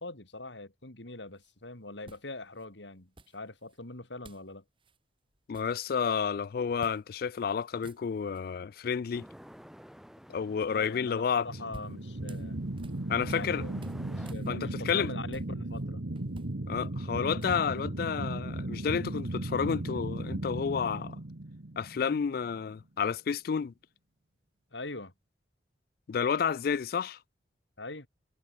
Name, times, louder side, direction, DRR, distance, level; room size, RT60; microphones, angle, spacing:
voice 1, 0.0-4.6 10.6-12.7 13.3-16.1 24.7-25.1 27.8-28.1, left 2 dB, 90° left, 3.8 m, -43 dB
sound 1, 1.4-1.5 2.0-2.7 3.2-3.8 4.2-4.5 4.8-5.0 5.3-6.2 6.8-7.0 7.3-7.4 7.7-8.4 11.3-13.5 13.8-15.8 16.2-17.8, right 1 dB, 30° right, 6.5 m, -54 dB
voice 2, 5.5-9.3 10.3-11.5 13.1-13.6 14.5-15.1 16.7-21.2 21.8-23.7 26.1-27.2, left 6 dB, 55° left, 0.3 m, -30 dB
sound 2, 9.1-14.3, equal, ahead, 4.2 m, -52 dB
sound 3, 11.5-22.4, right 1 dB, 80° right, 1.4 m, -36 dB
head